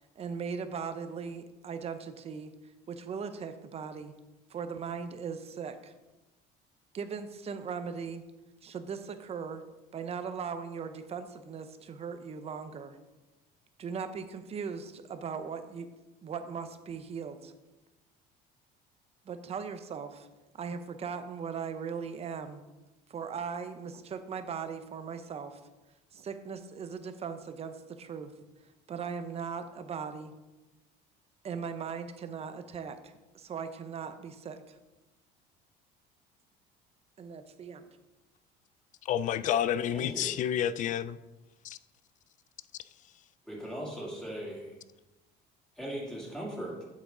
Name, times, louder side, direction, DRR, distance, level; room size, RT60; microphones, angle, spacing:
voice 1, 0.2-2.5 2.9-4.1 4.5-5.9 6.9-8.2 8.6-9.6 9.9-13.0 13.8-15.9 16.2-17.5 19.3-20.3 20.5-22.6 23.1-25.6 26.1-28.3 28.9-30.3 31.4-34.7 37.2-37.9, right 6 dB, 35° right, 0.8 m, -39 dB
voice 2, 39.1-41.2 41.6-41.8, left 10 dB, 45° left, 0.4 m, -29 dB
voice 3, 39.9-40.4 43.5-44.7 45.8-46.8, right 1 dB, 5° left, 2.7 m, -39 dB
8.3 x 7.6 x 3.8 m
cardioid pair, 130°, 19 cm